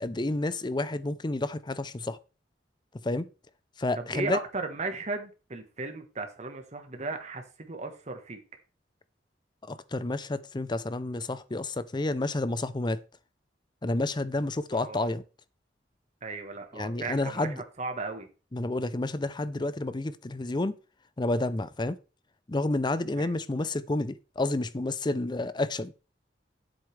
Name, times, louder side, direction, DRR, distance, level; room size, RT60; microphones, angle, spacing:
voice 1, 0.0-2.2 3.0-3.3 3.8-4.4 9.7-13.0 13.8-15.2 16.7-17.6 18.5-20.7 21.2-22.0 22.5-25.9, left 2 dB, 25° left, 0.5 m, -30 dB
voice 2, 4.0-8.4 14.7-15.1 16.2-18.3 23.2-23.3, right 3 dB, 40° right, 1.3 m, -36 dB
9.8 x 8.1 x 3.3 m
head